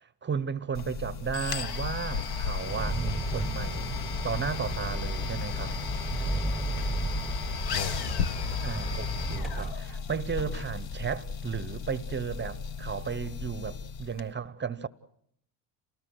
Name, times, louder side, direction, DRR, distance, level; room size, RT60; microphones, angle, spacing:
voice 1, 0.0-3.9 4.2-5.8 8.6-14.9, right 6 dB, 20° right, 0.9 m, -34 dB
sound 1, 0.7-14.2, left 6 dB, 50° left, 1.5 m, -35 dB
sound 2, 2.0-3.3 3.6-3.7 3.8-3.9 4.1-5.3 6.2-6.3 6.6-6.7 7.4-8.8 9.6-11.9 12.2-12.6 12.9-14.1, left 7 dB, 70° left, 1.1 m, -39 dB
Engine, 2.6-9.7, right 3 dB, ahead, 1.1 m, -34 dB
voice 2, 4.4-4.9 6.0-7.7, left 7 dB, 90° left, 1.4 m, -56 dB
28.5 x 18.5 x 8.0 m
supercardioid pair, 85°, 49 cm